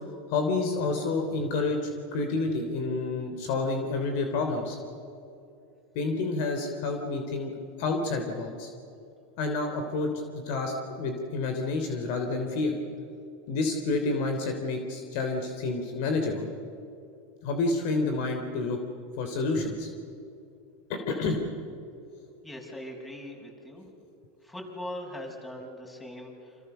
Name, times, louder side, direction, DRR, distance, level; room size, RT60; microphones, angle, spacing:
voice 1, 0.3-4.8 5.9-7.5 7.8-8.7 9.4-12.8 13.5-16.5 17.4-18.8 19.2-19.9 20.9-21.4, left 3 dB, 65° left, 4 dB, 3.3 m, -29 dB
voice 2, 22.4-23.9 24.4-26.7, left 1 dB, 10° left, 0 dB, 6.2 m, -41 dB
29.5 x 26.0 x 6.9 m, 2.6 s
supercardioid pair, 130°, 0 cm